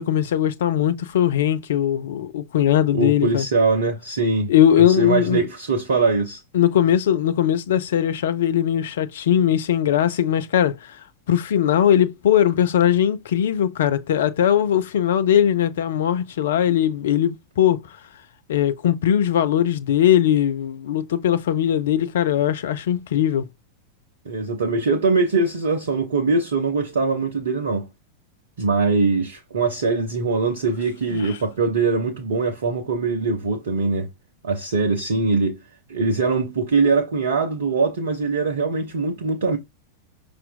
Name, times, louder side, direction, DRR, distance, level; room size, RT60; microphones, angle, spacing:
voice 1, 0.0-3.5 4.5-5.5 6.5-11.0 11.3-17.8 18.5-23.4 31.1-31.4, left 10 dB, 60° left, 0.4 m, -20 dB
voice 2, 2.9-4.5 4.8-6.4 24.3-27.9 28.6-34.1 34.4-35.6 35.9-39.6, right 3 dB, 65° right, 0.6 m, -22 dB
5.5 x 2.5 x 2.2 m
figure-of-eight pair, 90°, 0 cm